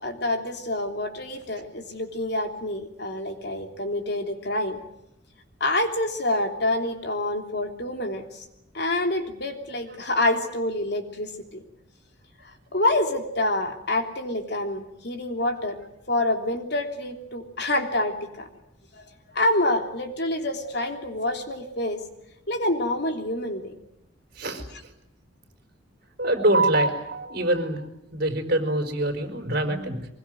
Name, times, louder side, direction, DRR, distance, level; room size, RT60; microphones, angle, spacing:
voice 1, 0.0-4.8 5.6-8.2 8.7-11.3 12.7-15.8 16.1-18.5 19.3-22.0 22.5-23.7, left 1 dB, 55° left, 4 dB, 3.3 m, -27 dB
voice 2, 26.2-27.8 28.1-30.1, right 1 dB, 55° right, 6 dB, 4.5 m, -24 dB
24.0 x 22.0 x 9.2 m, 0.81 s
head